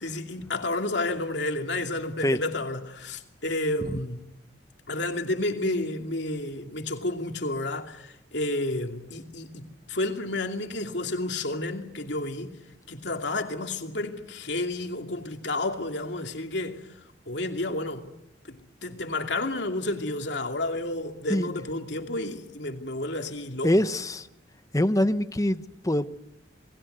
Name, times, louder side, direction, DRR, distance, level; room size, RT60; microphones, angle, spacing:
voice 1, 0.0-4.2 4.9-12.6 12.9-16.8 17.3-18.1 18.5-23.7, left 2 dB, 65° left, 2.7 m, -31 dB
voice 2, 23.6-24.3 24.7-26.1, left 1 dB, 20° left, 0.9 m, -24 dB
28.5 x 21.0 x 8.0 m
head